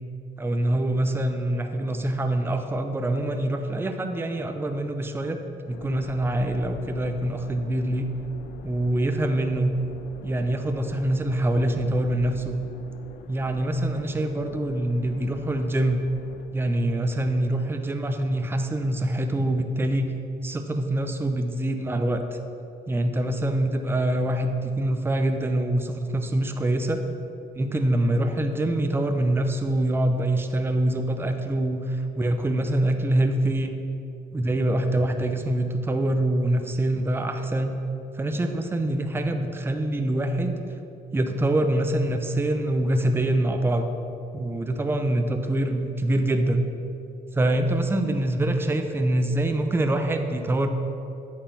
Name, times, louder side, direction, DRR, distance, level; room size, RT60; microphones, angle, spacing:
voice 1, 0.4-5.4 5.7-8.1 8.6-9.7 10.2-12.6 13.3-16.0 16.5-20.1 20.4-22.2 22.9-27.0 27.5-33.7 34.3-37.7 38.2-40.6 41.1-43.9 44.3-46.6 47.3-50.7, right 1 dB, 15° right, 6 dB, 0.6 m, -25 dB
sound 1, 5.7-16.5, left 7 dB, 85° left, 0.5 m, -44 dB
8.9 x 4.9 x 5.8 m, 2.7 s
cardioid pair, 110°, 17 cm